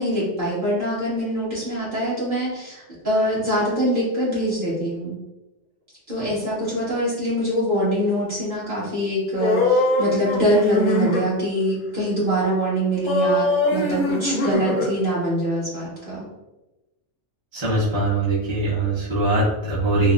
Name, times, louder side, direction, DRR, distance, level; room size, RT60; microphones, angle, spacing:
voice 1, 0.0-5.1 6.1-16.3, equal, 45° right, -9 dB, 1.5 m, -24 dB
sound 1, 9.4-11.2 13.0-14.9, left 1 dB, 55° left, 0.7 m, -22 dB
voice 2, 17.5-20.1, right 2 dB, 25° right, -10 dB, 0.7 m, -21 dB
4.0 x 2.1 x 2.4 m, 1.0 s
omnidirectional pair, 1.2 m